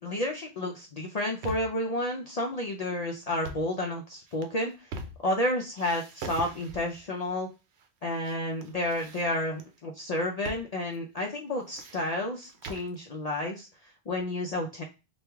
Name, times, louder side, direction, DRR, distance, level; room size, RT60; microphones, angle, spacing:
voice 1, 0.0-4.9 5.2-7.5 8.0-14.8, left 1 dB, 50° left, 0 dB, 0.5 m, -31 dB
sound 1, 1.1-1.8 3.3-3.8 4.3-5.4 5.7-7.0 7.8-8.4 8.6-9.7 10.4-10.7 10.9-11.0 11.5-13.0, right 3 dB, 90° right, 0.9 m, -42 dB
3.1 x 2.3 x 3.3 m, 0.28 s
omnidirectional pair, 1.1 m